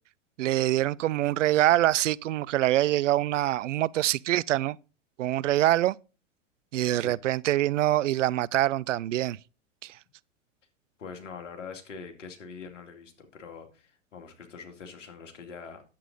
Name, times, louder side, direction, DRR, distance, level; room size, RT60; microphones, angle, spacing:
voice 1, 0.4-4.8 5.2-6.0 6.7-9.4 9.8-9.9, right 14 dB, 75° right, 0.5 m, -25 dB
voice 2, 11.0-15.8, left 5 dB, 75° left, 2.4 m, -43 dB
9.8 x 8.1 x 3.9 m
hypercardioid pair, 100°, 37 cm